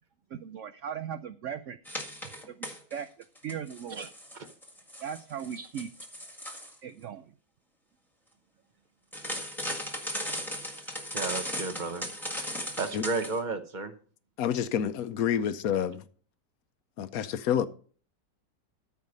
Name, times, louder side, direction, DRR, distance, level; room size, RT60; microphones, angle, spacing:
voice 1, 0.3-3.1 3.4-4.1 5.0-5.9 6.8-7.3, right 8 dB, 85° right, 0.6 m, -39 dB
sound 1, 1.9-3.0 3.4-6.7 9.1-13.4, equal, ahead, 1.5 m, -37 dB
voice 2, 11.1-12.1 12.8-13.9, right 3 dB, 35° right, 0.8 m, -33 dB
voice 3, 14.4-16.0 17.0-17.7, left 9 dB, 65° left, 1.0 m, -28 dB
13.5 x 4.8 x 5.4 m
omnidirectional pair, 1.9 m